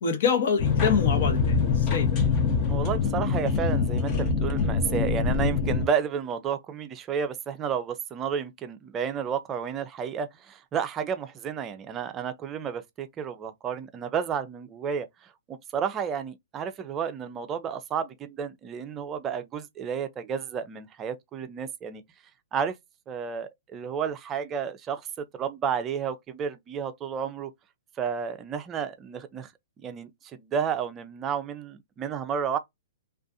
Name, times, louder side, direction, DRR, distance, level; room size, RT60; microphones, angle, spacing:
voice 1, 0.0-2.1, left 6 dB, 60° left, 0.9 m, -26 dB
sound 1, 0.6-5.9, left 5 dB, 30° left, 0.7 m, -24 dB
voice 2, 2.7-15.1 15.5-22.0 22.5-22.8 23.1-27.5 28.0-29.5 29.8-32.6, right 7 dB, 20° right, 0.4 m, -31 dB
2.5 x 2.3 x 2.6 m
hypercardioid pair, 145°, 0 cm